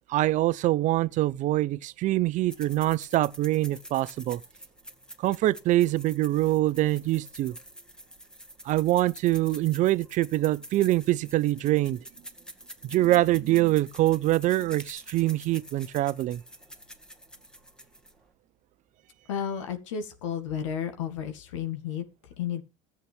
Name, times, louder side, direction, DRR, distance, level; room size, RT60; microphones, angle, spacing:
voice 1, 0.1-4.4 5.2-7.5 8.6-12.0 12.8-16.4, right 16 dB, 55° right, 0.7 m, -24 dB
sound 1, 2.5-18.3, equal, 5° left, 2.1 m, -48 dB
voice 2, 19.3-22.1 22.4-22.6, left 8 dB, 80° left, 2.0 m, -32 dB
14.0 x 8.5 x 3.4 m
hypercardioid pair, 70°, 16 cm